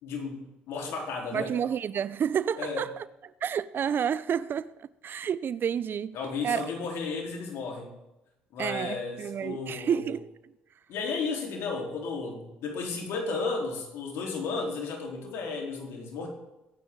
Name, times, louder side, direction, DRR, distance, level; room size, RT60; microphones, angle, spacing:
voice 1, 0.0-1.6 2.6-2.9 6.1-7.9 8.5-10.1 10.9-16.3, left 4 dB, 70° left, 4.2 m, -34 dB
voice 2, 1.3-3.0 3.4-6.2 6.4-6.7 8.6-10.3, right 8 dB, 50° right, 0.6 m, -30 dB
22.5 x 9.4 x 4.0 m
hypercardioid pair, 65°, 5 cm